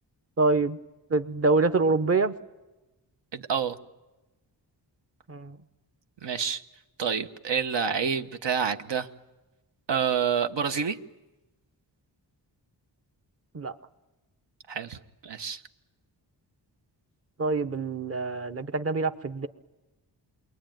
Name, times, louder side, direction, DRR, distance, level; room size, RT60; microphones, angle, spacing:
voice 1, 0.4-0.8 1.1-2.3 5.3-5.6 13.5-13.7 17.4-19.5, right 3 dB, 35° right, 9 dB, 1.0 m, -25 dB
voice 2, 3.3-3.8 6.2-6.6 7.0-9.1 9.9-11.0 14.7-15.6, right 7 dB, 75° right, 8 dB, 1.2 m, -28 dB
28.5 x 22.5 x 9.2 m, 1.1 s
wide cardioid pair, 175°, 43 cm